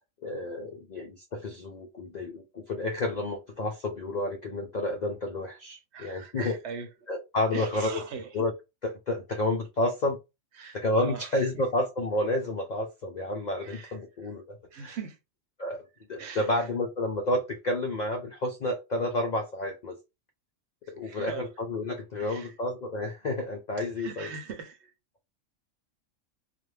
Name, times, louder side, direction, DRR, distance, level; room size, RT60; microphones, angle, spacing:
voice 1, 0.2-6.6 7.1-8.0 8.3-8.5 8.8-10.2 10.7-15.0 15.6-15.8 16.1-20.0 20.9-24.3, left 1 dB, 90° left, 0.3 m, -30 dB
voice 2, 5.9-6.9 7.5-8.3 10.6-10.8 11.0-11.2 13.7-13.9 14.7-15.2 16.2-16.4 21.0-21.4 22.2-22.5 24.0-24.9, right 6 dB, 60° right, 0.9 m, -39 dB
2.4 x 2.1 x 3.1 m
omnidirectional pair, 1.4 m